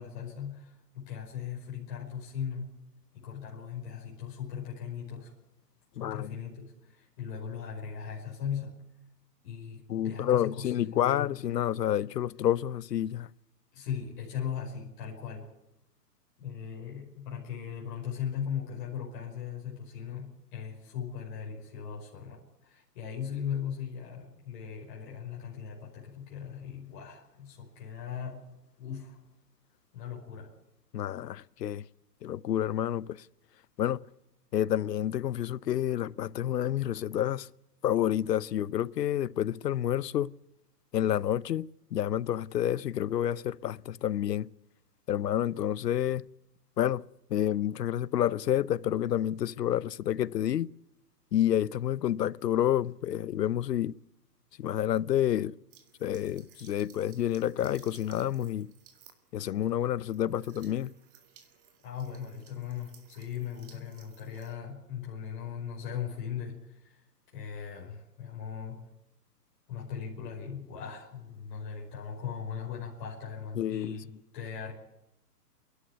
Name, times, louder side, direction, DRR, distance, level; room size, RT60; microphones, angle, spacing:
voice 1, 0.0-2.8 3.1-5.3 6.0-8.8 9.4-11.3 13.7-15.5 16.4-28.5 28.8-29.2 29.9-30.5 61.8-67.0 67.3-68.8 69.7-74.7, left 8 dB, 30° left, 5.3 m, -38 dB
voice 2, 6.0-6.3 9.9-13.3 30.9-31.8 32.2-33.2 33.8-34.1 34.5-37.5 37.8-40.3 40.9-44.5 45.1-46.3 46.8-50.7 51.3-54.0 54.6-55.5 56.0-58.7 59.3-60.9 73.6-74.0, left 11 dB, 80° left, 0.8 m, -29 dB
sound 1, 55.7-64.5, right 8 dB, 35° right, 2.2 m, -59 dB
28.5 x 11.5 x 9.5 m
hypercardioid pair, 165°, 48 cm